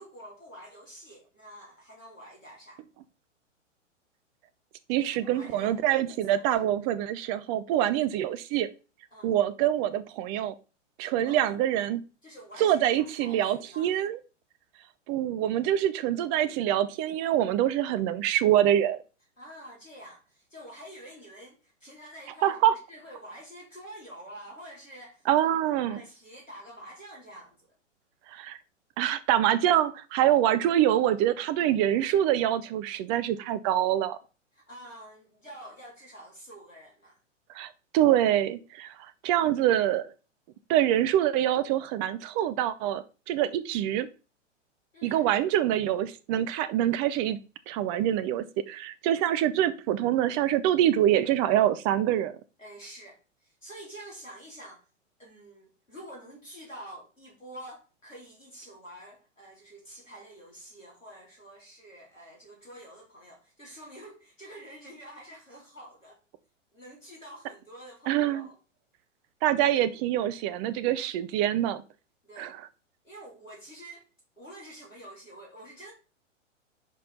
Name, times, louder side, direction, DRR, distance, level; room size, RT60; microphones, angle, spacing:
voice 1, 0.0-2.8 5.0-6.5 9.1-9.3 11.0-11.6 12.2-13.9 19.4-25.2 25.8-27.6 34.5-37.2 44.9-45.3 52.6-54.8 55.2-66.2 66.7-68.6 72.2-72.5 73.0-74.0 74.4-75.9, right 1 dB, 85° left, 3.7 m, -47 dB
voice 2, 4.9-8.7 9.2-10.5 11.0-12.0 12.6-14.2 15.1-19.0 22.4-22.7 25.3-26.0 28.3-28.6 29.0-34.2 37.5-40.1 40.7-44.1 45.0-47.4 47.7-52.4 68.1-68.5 69.4-71.8 72.4-72.5, right 12 dB, 20° right, 0.4 m, -25 dB
10.5 x 4.2 x 4.0 m
figure-of-eight pair, 105°, 38 cm